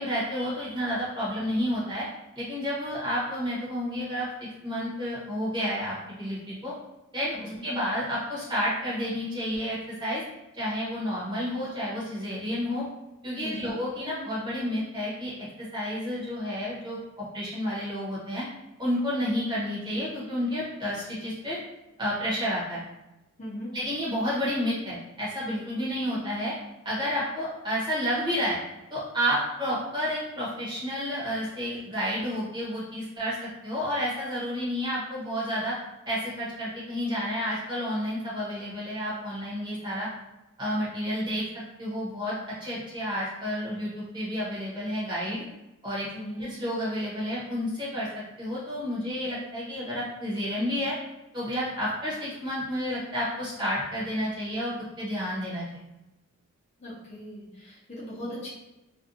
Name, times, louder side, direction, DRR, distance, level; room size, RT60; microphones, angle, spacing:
voice 1, 0.0-2.1 2.3-4.3 4.6-6.7 7.1-10.2 10.5-12.8 13.2-15.3 15.7-18.5 18.8-21.6 22.0-22.8 23.7-26.5 26.8-28.6 28.9-35.7 36.1-40.1 40.6-41.4 41.8-45.4 45.8-46.1 46.4-50.9 51.3-55.6, equal, 20° right, -8 dB, 0.9 m, -30 dB
voice 2, 23.4-23.7 46.1-46.5 56.8-58.5, equal, 30° left, -7 dB, 0.6 m, -38 dB
2.5 x 2.3 x 2.5 m, 0.98 s
head